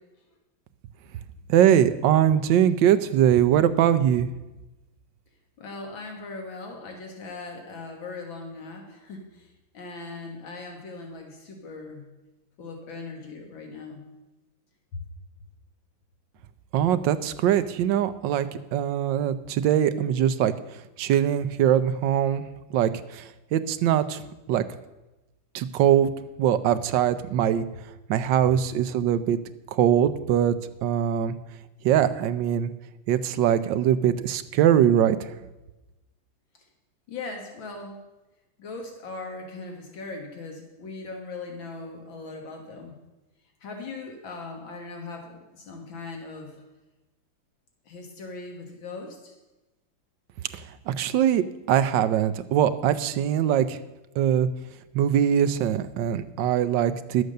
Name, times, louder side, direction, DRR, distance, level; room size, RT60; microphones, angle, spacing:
voice 1, 1.5-4.3 16.7-18.5 18.7-20.5 21.0-22.4 22.7-23.2 23.5-24.2 24.5-24.6 25.5-26.1 26.4-27.6 28.1-29.4 29.7-30.6 30.8-31.3 31.8-32.7 33.1-35.2 50.9-53.8 54.2-54.5 54.9-57.2, right 10 dB, 75° right, 11 dB, 1.3 m, -22 dB
voice 2, 5.6-12.1 12.6-14.1 37.1-38.0 38.6-43.0 43.6-46.6 47.9-49.4, left 3 dB, 80° left, 2 dB, 2.2 m, -39 dB
11.5 x 8.1 x 6.5 m, 1.0 s
omnidirectional pair, 2.1 m